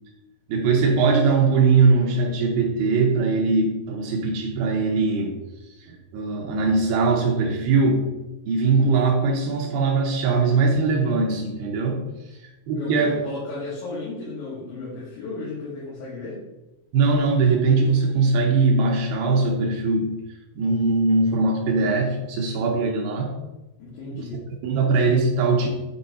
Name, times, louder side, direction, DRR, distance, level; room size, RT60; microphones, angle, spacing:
voice 1, 0.5-5.3 5.8-8.1 8.5-12.0 12.4-13.2 16.9-20.1 20.6-23.4 24.1-24.2 24.6-25.7, right 4 dB, 85° right, 0 dB, 2.1 m, -21 dB
voice 2, 12.8-16.4 23.8-24.5, left 3 dB, 70° left, -7 dB, 3.8 m, -34 dB
8.8 x 3.9 x 4.1 m, 1.0 s
omnidirectional pair, 5.5 m